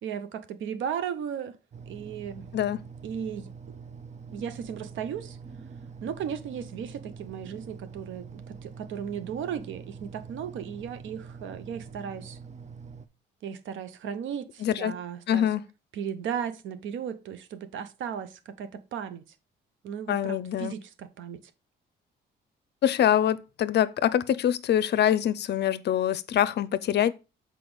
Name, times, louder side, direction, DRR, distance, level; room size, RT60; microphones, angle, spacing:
voice 1, 0.0-1.6 1.9-2.5 3.0-3.5 4.3-5.4 6.0-12.4 13.4-15.5 15.9-19.2 19.8-21.4, right 8 dB, 75° right, 0.8 m, -36 dB
sound 1, 1.7-13.1, right 5 dB, 35° right, 0.6 m, -45 dB
voice 2, 14.6-14.9 15.3-15.6 20.1-20.7 22.8-27.1, left 10 dB, 60° left, 0.5 m, -24 dB
6.2 x 4.6 x 5.0 m
cardioid pair, 90°, 20 cm